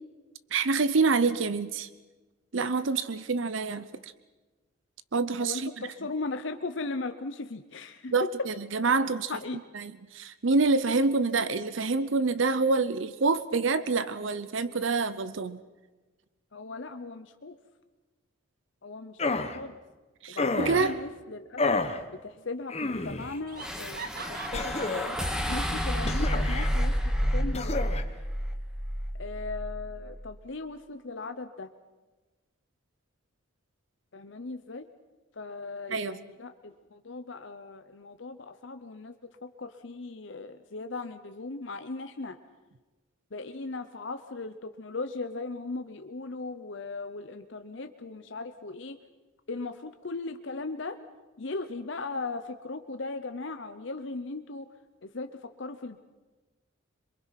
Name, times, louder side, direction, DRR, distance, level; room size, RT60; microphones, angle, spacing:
voice 1, 0.5-1.9 2.5-4.1 5.1-5.7 8.1-9.3 9.7-15.6 20.2-20.9 35.9-36.2, right 4 dB, 70° right, 14 dB, 0.7 m, -27 dB
voice 2, 5.4-8.1 9.3-9.6 16.5-17.6 18.8-19.8 20.3-21.8 22.2-25.2 25.5-27.0 27.3-27.8 29.1-31.7 34.1-34.9 35.3-42.4 43.3-49.0 49.5-51.0 51.4-54.7 55.0-56.0, left 3 dB, 65° left, 8 dB, 0.8 m, -38 dB
sound 1, 19.2-19.6 20.4-20.9 21.6-22.0 22.7-23.3 24.5-25.2 26.0-26.7 27.5-28.0, left 3 dB, 30° left, 1.2 m, -30 dB
Laughter, 21.9-22.4 22.7-22.8 23.2-25.7, right 5 dB, 45° right, 1.2 m, -45 dB
sound 2, 23.6-29.9, equal, 5° right, 1.7 m, -30 dB
26.5 x 23.0 x 5.9 m, 1.2 s
head